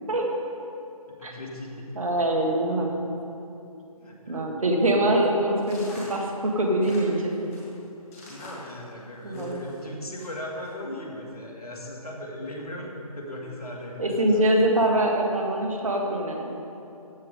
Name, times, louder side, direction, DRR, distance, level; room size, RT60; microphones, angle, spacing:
voice 1, 1.1-1.9 4.0-4.6 8.2-14.5, left 1 dB, 75° left, -1 dB, 2.2 m, -38 dB
voice 2, 1.9-3.1 4.3-7.5 9.2-9.6 14.0-16.7, right 1 dB, 60° right, 1 dB, 1.7 m, -24 dB
sound 1, 5.6-9.8 10.2-10.7, left 1 dB, 20° left, 2.1 m, -46 dB
14.0 x 7.9 x 3.7 m, 2.9 s
figure-of-eight pair, 155°, 19 cm